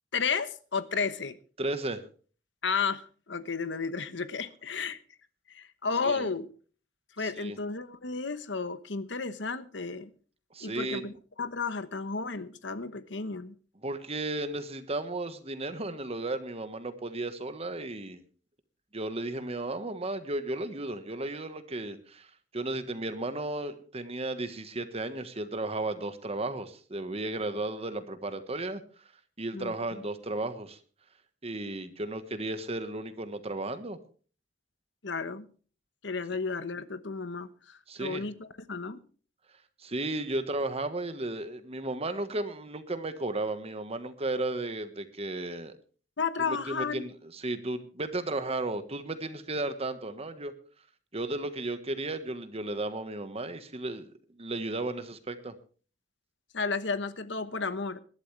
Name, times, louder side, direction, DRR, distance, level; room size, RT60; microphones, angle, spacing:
voice 1, 0.1-1.4 2.6-5.0 5.5-6.5 7.2-10.1 10.6-11.1 11.4-13.5 29.5-30.0 35.0-35.5 36.0-39.0 46.2-47.1 56.5-58.0, left 5 dB, 70° left, 1.1 m, -33 dB
voice 2, 1.6-2.0 6.0-6.3 7.2-7.6 10.5-11.1 13.8-18.2 18.9-22.3 22.5-28.8 29.4-30.8 31.4-34.0 37.9-38.2 39.8-45.7 46.4-50.5 51.1-54.1 54.4-55.5, right 2 dB, 35° right, 1.4 m, -34 dB
20.5 x 12.0 x 3.3 m
head